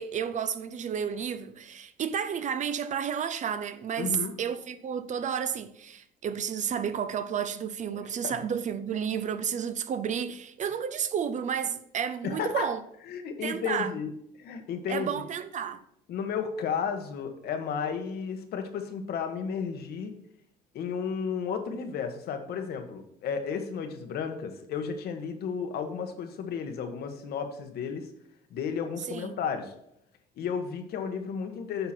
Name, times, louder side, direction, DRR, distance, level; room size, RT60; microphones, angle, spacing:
voice 1, 0.0-12.8 13.4-13.9 14.9-15.8 29.1-29.3, right 8 dB, 45° right, 0.7 m, -31 dB
voice 2, 4.0-4.3 7.9-8.4 12.2-12.7 13.1-14.1 14.4-15.2 16.1-20.1 20.7-28.1 28.5-29.7 30.4-31.9, left 6 dB, 70° left, 1.4 m, -33 dB
9.3 x 6.0 x 4.4 m
cardioid pair, 110°, 17 cm